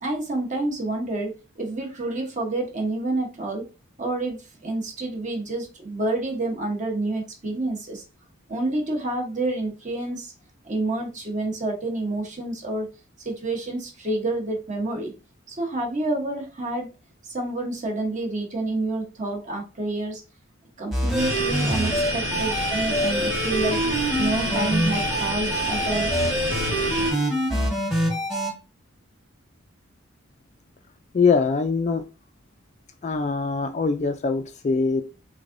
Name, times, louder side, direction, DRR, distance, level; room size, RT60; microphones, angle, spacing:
voice 1, 0.0-3.7 4.0-8.0 8.5-10.3 10.6-12.9 13.2-15.1 15.5-16.9 17.2-20.2 20.8-23.8 24.2-26.1, right 2 dB, 35° right, 1 dB, 1.0 m, -28 dB
sound 1, 20.9-28.5, equal, ahead, 1.1 m, -26 dB
sound 2, 21.2-27.1, equal, 70° right, 1.3 m, -28 dB
voice 2, 31.1-32.0 33.0-35.0, left 4 dB, 35° left, 8 dB, 0.3 m, -22 dB
3.4 x 3.3 x 2.5 m, 0.31 s
head